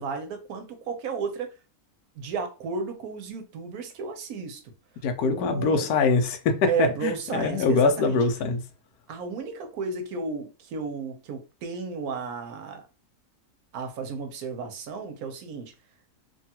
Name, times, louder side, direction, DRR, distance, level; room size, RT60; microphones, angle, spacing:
voice 1, 0.0-1.5 2.1-4.6 5.3-5.9 6.7-8.2 9.1-12.9 13.7-15.7, right 5 dB, 85° right, 1.2 m, -33 dB
voice 2, 5.0-8.6, left 4 dB, 85° left, 1.1 m, -23 dB
3.1 x 2.3 x 2.8 m
omnidirectional pair, 1.6 m